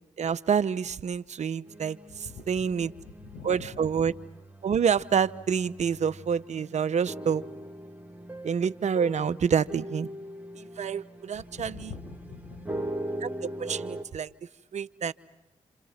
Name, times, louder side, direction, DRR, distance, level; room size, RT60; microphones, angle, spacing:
voice 1, 0.2-2.0 2.5-2.9 3.5-4.1 4.6-7.4 8.4-10.1 10.8-11.7 13.2-14.3 14.7-15.1, right 7 dB, 65° right, 16 dB, 0.9 m, -27 dB
sound 1, 1.7-14.0, right 1 dB, 15° right, 3.0 m, -41 dB
voice 2, 2.1-4.1 11.3-12.9, left 5 dB, 80° left, 6 dB, 6.4 m, -45 dB
29.0 x 27.5 x 6.0 m, 1.1 s
supercardioid pair, 45°, 13 cm